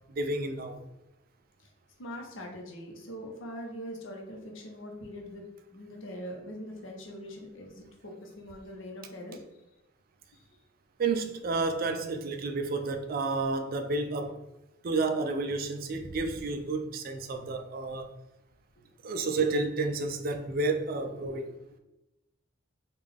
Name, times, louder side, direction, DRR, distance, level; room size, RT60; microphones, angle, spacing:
voice 1, 0.2-0.8 11.0-14.4 14.8-18.1 19.0-21.5, right 3 dB, 45° right, 0.4 m, -30 dB
voice 2, 2.0-9.4 10.3-10.4 21.2-21.4, equal, 65° left, 0.8 m, -42 dB
3.7 x 2.3 x 3.4 m
head